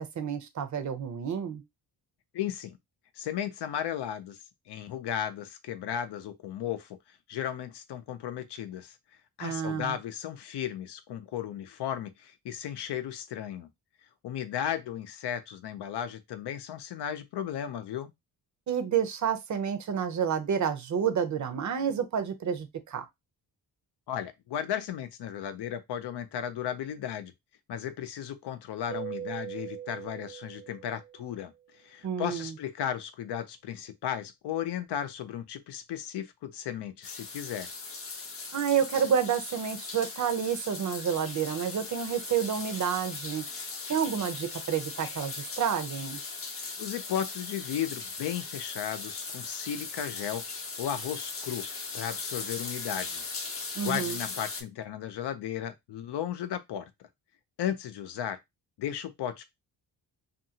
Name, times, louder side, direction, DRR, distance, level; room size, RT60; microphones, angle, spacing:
voice 1, 0.0-1.6 9.4-10.0 18.7-23.1 32.0-32.6 38.5-43.4 43.9-46.2 53.7-54.2, right 8 dB, 45° right, 0.6 m, -29 dB
voice 2, 2.3-2.8 3.2-4.4 4.7-8.9 9.4-13.7 14.2-18.1 24.1-27.3 27.7-31.5 31.8-37.7 46.8-51.6 51.9-53.2 53.8-56.9 57.6-58.4 58.8-59.4, left 10 dB, 80° left, 0.6 m, -35 dB
Keyboard (musical), 28.9-31.4, right 10 dB, 75° right, 0.9 m, -41 dB
sound 1, 37.0-54.6, left 4 dB, 35° left, 0.6 m, -39 dB
2.7 x 2.5 x 2.7 m
wide cardioid pair, 135°, 40 cm